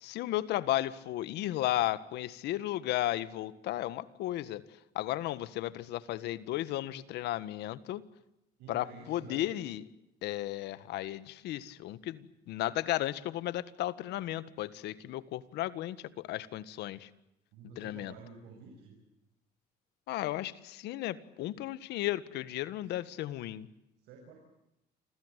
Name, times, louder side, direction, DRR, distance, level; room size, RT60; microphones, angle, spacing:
voice 1, 0.0-4.6 5.0-8.0 8.7-9.8 10.2-17.1 17.8-18.1 20.1-23.7, left 14 dB, 80° left, 15 dB, 1.7 m, -34 dB
voice 2, 8.6-9.5 17.5-19.0 22.8-22.9 23.5-23.6 24.0-24.4, right 4 dB, 90° right, 2 dB, 6.9 m, -50 dB
29.0 x 21.5 x 8.3 m, 0.89 s
cardioid pair, 110°, 17 cm